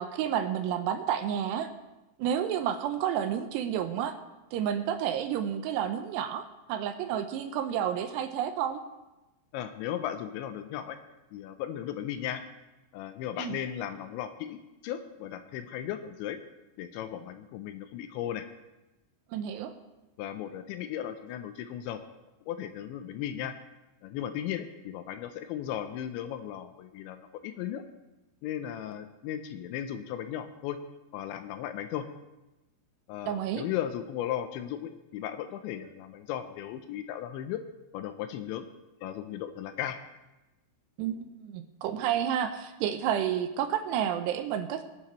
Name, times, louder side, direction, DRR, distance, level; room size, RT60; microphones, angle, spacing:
voice 1, 0.0-1.7 2.2-4.2 4.5-8.8 13.4-13.6 19.3-19.7 33.3-33.6 41.0-44.8, right 9 dB, 80° right, 8 dB, 2.6 m, -30 dB
voice 2, 9.5-11.0 11.3-12.4 12.9-14.6 14.8-16.4 16.8-18.4 20.2-22.0 22.5-23.5 24.0-27.8 28.4-30.8 31.1-32.1 33.1-37.6 37.9-38.7 39.0-40.0, left 10 dB, 80° left, 9 dB, 2.9 m, -36 dB
24.5 x 8.7 x 3.1 m, 1.0 s
omnidirectional pair, 5.4 m